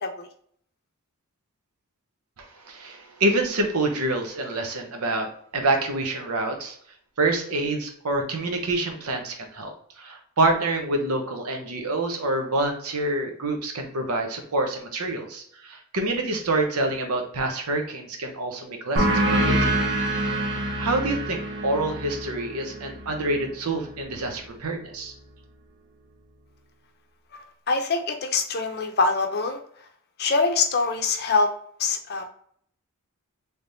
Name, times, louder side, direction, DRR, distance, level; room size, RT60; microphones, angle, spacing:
voice 1, 2.4-6.8 7.2-19.9 20.8-25.1, right 2 dB, 80° right, 4 dB, 0.8 m, -27 dB
sound 1, 19.0-24.1, right 1 dB, 50° right, 0.8 m, -26 dB
voice 2, 27.7-29.6 30.2-31.5 31.8-32.3, left 4 dB, 45° left, 5 dB, 0.6 m, -24 dB
3.4 x 3.3 x 2.7 m, 0.63 s
head